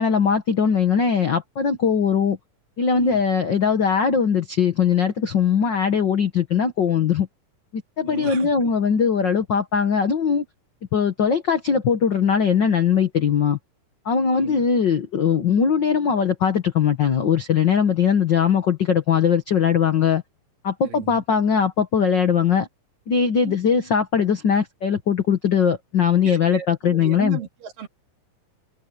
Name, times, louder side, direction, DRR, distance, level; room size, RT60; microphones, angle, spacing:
voice 1, 0.0-2.4 2.8-7.3 7.7-10.4 10.9-13.6 14.0-20.2 20.6-22.7 23.1-27.4, left 7 dB, 75° left, 1.0 m, -20 dB
voice 2, 8.1-8.7 14.3-14.6 20.8-21.2 23.4-23.5 26.2-27.9, right 9 dB, 75° right, 3.9 m, -36 dB
omnidirectional pair, 4.0 m